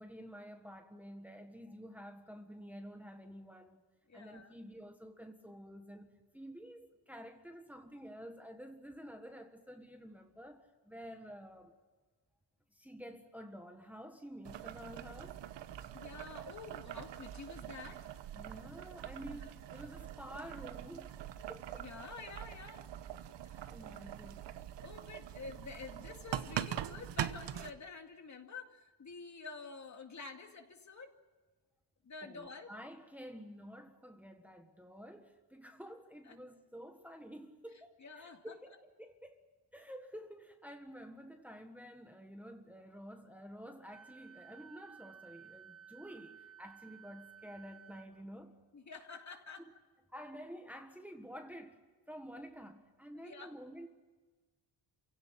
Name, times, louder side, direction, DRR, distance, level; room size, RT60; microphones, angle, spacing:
voice 1, 0.0-3.8 4.1-6.1 6.3-11.7 12.7-15.4 18.3-21.2 21.5-21.9 23.7-24.4 32.2-39.4 39.7-48.6 49.6-49.7 50.1-53.9, equal, 5° right, 1.6 m, -50 dB
voice 2, 4.1-4.5 15.9-18.2 19.2-19.5 21.8-22.9 23.4-23.7 24.8-31.2 32.0-32.7 36.3-36.4 38.0-38.5 48.7-49.6 53.1-53.5, left 4 dB, 40° left, 2.3 m, -49 dB
Boiling, 14.4-27.7, right 11 dB, 80° right, 1.1 m, -43 dB
Wind instrument woodwind instrument, 43.9-48.1, right 7 dB, 50° right, 3.4 m, -56 dB
28.5 x 17.0 x 8.8 m
cardioid pair, 130°, 42 cm